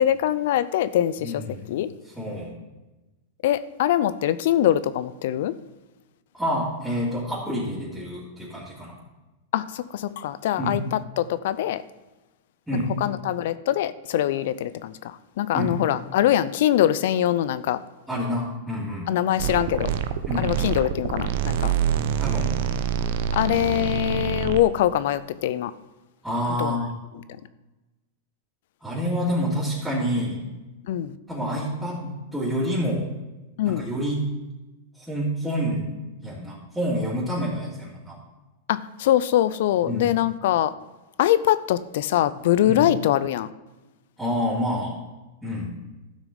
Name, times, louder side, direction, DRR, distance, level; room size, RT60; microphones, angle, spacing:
voice 1, 0.0-1.4 1.7-1.9 3.4-5.5 9.5-11.8 13.0-17.8 19.1-19.9 20.4-21.7 23.3-25.7 26.6-26.8 30.9-31.2 33.6-33.9 38.7-40.7 41.2-43.5, left 12 dB, 65° left, 15 dB, 0.4 m, -23 dB
voice 2, 1.2-1.7 2.0-2.5 6.3-8.9 10.6-10.8 12.7-12.9 15.5-15.7 18.1-19.1 20.2-20.5 22.2-22.5 26.2-26.9 28.8-30.4 31.3-33.1 33.6-34.2 35.0-35.9 36.2-38.2 39.8-40.1 42.6-42.8 44.2-45.0 45.4-45.7, equal, 5° right, -9 dB, 3.2 m, -28 dB
sound 1, 19.4-24.6, right 9 dB, 60° right, 0.7 m, -26 dB
12.5 x 6.0 x 5.2 m, 1.1 s
hypercardioid pair, 110°, 0 cm